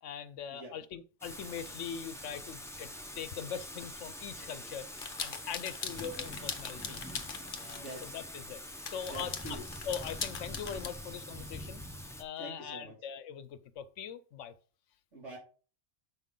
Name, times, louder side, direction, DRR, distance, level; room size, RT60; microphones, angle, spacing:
voice 1, 0.0-4.9 5.2-7.0 7.6-9.6 9.9-11.8 12.2-14.5, left 8 dB, 75° left, 1.0 m, -42 dB
Thunder / Rain, 1.2-12.2, left 1 dB, 5° left, 0.6 m, -45 dB
sound 1, 5.0-8.0 8.6-10.9, left 6 dB, 50° left, 1.0 m, -41 dB
voice 2, 7.7-8.1 9.0-9.7 12.4-12.9 15.1-15.4, right 1 dB, 70° right, 3.4 m, -45 dB
7.5 x 5.6 x 3.7 m
omnidirectional pair, 1.3 m